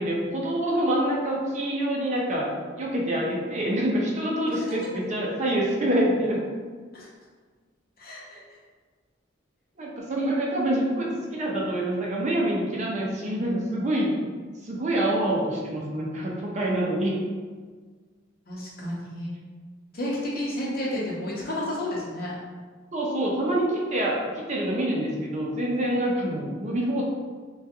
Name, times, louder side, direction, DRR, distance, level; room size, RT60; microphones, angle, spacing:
voice 1, 0.0-2.5 2.8-6.4 9.8-14.2 14.6-17.1 22.9-27.0, right 1 dB, 35° right, -3 dB, 0.5 m, -26 dB
voice 2, 4.5-4.9 6.9-7.1 8.0-8.4 14.2-14.3 18.5-19.4 19.9-22.3, left 1 dB, 50° left, -5 dB, 0.8 m, -32 dB
3.4 x 2.3 x 2.8 m, 1.5 s
head